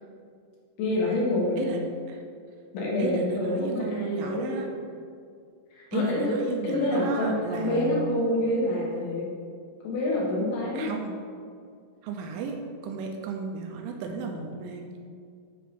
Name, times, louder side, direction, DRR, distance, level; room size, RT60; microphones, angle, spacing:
voice 1, 0.8-1.7 2.7-4.9 5.7-6.4 6.6-9.3 9.8-10.9, left 1 dB, 70° left, -4 dB, 3.8 m, -27 dB
voice 2, 3.0-4.7 5.9-8.0 10.7-11.2 12.0-12.6 12.8-15.0, right 5 dB, 80° right, 2 dB, 3.1 m, -34 dB
9.3 x 3.8 x 6.9 m, 2.2 s
omnidirectional pair, 5.8 m